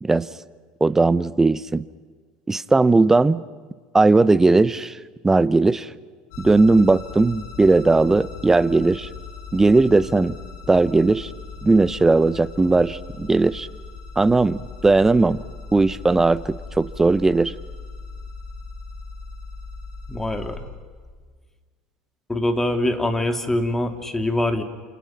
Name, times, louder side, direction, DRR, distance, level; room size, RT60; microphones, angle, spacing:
voice 1, 0.8-1.8 2.5-3.4 3.9-5.0 5.2-5.9 6.4-9.1 9.5-10.3 10.7-11.3 11.6-13.7 14.2-15.4 15.7-17.5, right 3 dB, 15° right, 16 dB, 0.9 m, -18 dB
sound 1, 6.3-20.6, left 4 dB, 70° left, 6.5 m, -38 dB
voice 2, 20.1-20.7 22.3-24.6, left 1 dB, 10° left, 6 dB, 2.9 m, -23 dB
29.0 x 28.5 x 5.9 m, 1.5 s
hypercardioid pair, 85°, 3 cm